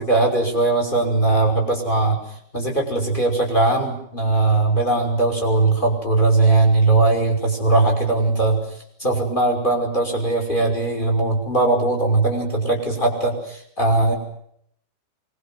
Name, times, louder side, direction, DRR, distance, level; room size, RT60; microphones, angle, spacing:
voice 1, 0.0-2.2 2.5-8.6 9.0-14.1, right 2 dB, 10° left, 2 dB, 6.0 m, -19 dB
24.5 x 23.0 x 7.9 m, 0.70 s
omnidirectional pair, 5.3 m